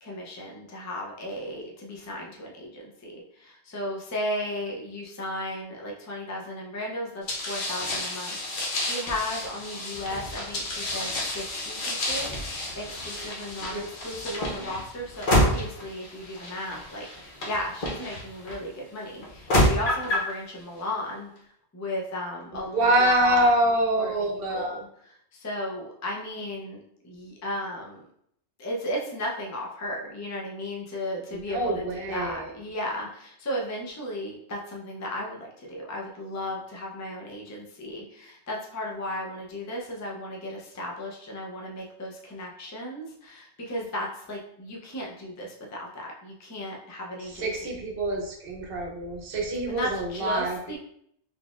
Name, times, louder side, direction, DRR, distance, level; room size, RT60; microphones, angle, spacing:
voice 1, 0.0-17.1 17.5-21.3 21.7-23.5 24.0-28.1 28.6-47.5 49.7-50.8, left 1 dB, 25° left, -1 dB, 0.4 m, -35 dB
sound 1, 7.3-18.6 19.2-20.3, left 1 dB, 50° left, 0.9 m, -29 dB
voice 2, 14.3-14.7 22.7-24.8 31.3-32.5 47.3-50.6, right 1 dB, 60° right, 1 dB, 0.9 m, -26 dB
4.0 x 3.3 x 2.4 m, 0.71 s
omnidirectional pair, 1.2 m